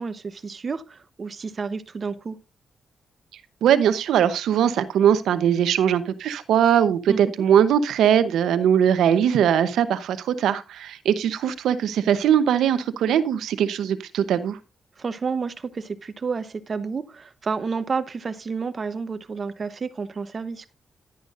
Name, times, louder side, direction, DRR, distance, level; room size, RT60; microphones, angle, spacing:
voice 1, 0.0-2.4 7.1-7.2 15.0-20.7, right 5 dB, 45° right, 1.0 m, -30 dB
voice 2, 3.6-14.6, right 9 dB, 90° right, 0.8 m, -20 dB
11.0 x 10.5 x 2.5 m
cardioid pair, 70°, 0 cm